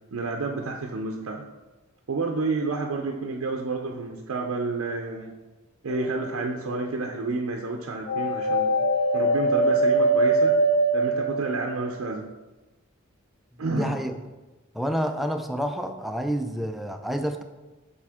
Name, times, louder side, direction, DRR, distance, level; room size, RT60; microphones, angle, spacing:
voice 1, 0.1-1.5 2.1-5.3 5.8-8.8 9.1-10.6 10.9-12.3 13.6-14.0, right 3 dB, 70° right, 2 dB, 0.6 m, -30 dB
sound 1, 5.9-6.6 8.1-11.9, right 2 dB, 30° left, 0.9 m, -22 dB
voice 2, 13.7-14.1 14.7-17.4, equal, ahead, 5 dB, 0.4 m, -28 dB
7.5 x 4.2 x 3.5 m, 1.1 s
head